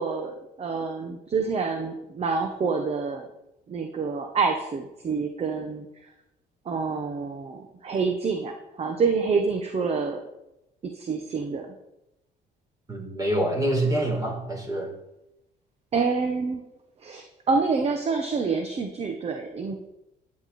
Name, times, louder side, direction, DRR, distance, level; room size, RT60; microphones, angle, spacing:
voice 1, 0.0-3.3 3.7-5.9 6.6-10.2 10.8-11.7 15.9-16.6 17.0-19.9, right 4 dB, 35° right, 5 dB, 1.3 m, -27 dB
voice 2, 12.9-14.9, right 1 dB, 20° right, 0 dB, 4.5 m, -26 dB
13.0 x 9.8 x 4.4 m, 0.91 s
cardioid pair, 110°, 17 cm